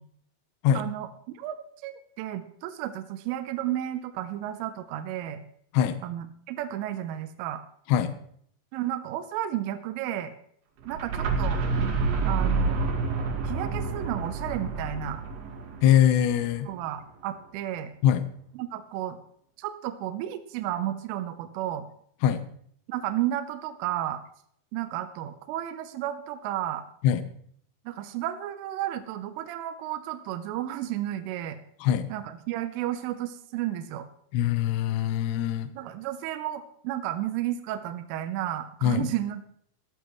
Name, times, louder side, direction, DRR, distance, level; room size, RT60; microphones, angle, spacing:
voice 1, 0.7-5.4 6.0-7.6 8.7-10.3 10.9-11.6 12.3-12.8 13.4-15.2 16.7-17.9 18.5-19.2 19.6-21.9 22.9-24.2 24.7-26.8 27.9-31.6 32.1-34.1 35.7-39.5, right 12 dB, 80° right, 8 dB, 3.3 m, -32 dB
sound 1, 10.8-16.6, right 4 dB, 60° right, 3.6 m, -28 dB
voice 2, 15.8-16.7 18.0-18.2 22.2-22.4 27.0-27.2 31.8-32.1 34.3-35.7 38.8-39.1, left 10 dB, 75° left, 10 dB, 2.7 m, -22 dB
18.0 x 13.0 x 3.2 m, 0.65 s
omnidirectional pair, 5.9 m